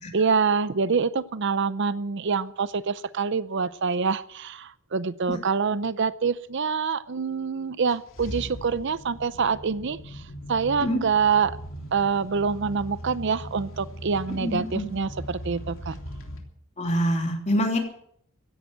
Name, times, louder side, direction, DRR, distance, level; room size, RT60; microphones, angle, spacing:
voice 1, 0.1-11.6 11.9-16.0, right 5 dB, 60° right, 16 dB, 0.6 m, -26 dB
sound 1, 7.9-16.4, equal, 70° left, 3.2 m, -40 dB
voice 2, 14.4-14.8 16.8-17.8, equal, 35° left, 3 dB, 3.3 m, -25 dB
16.0 x 10.5 x 7.9 m, 0.66 s
head